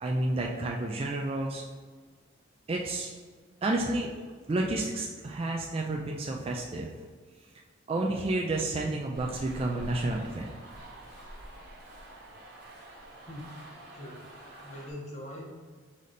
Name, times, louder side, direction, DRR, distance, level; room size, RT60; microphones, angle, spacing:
voice 1, 0.0-1.6 2.7-3.1 3.6-4.1 4.5-7.1 7.9-10.5, right 2 dB, 30° right, -1 dB, 0.3 m, -30 dB
sound 1, 9.1-14.9, right 1 dB, 50° right, 0.9 m, -47 dB
voice 2, 14.6-15.5, left 1 dB, 35° left, -4 dB, 1.0 m, -41 dB
4.1 x 3.8 x 3.3 m, 1.5 s
head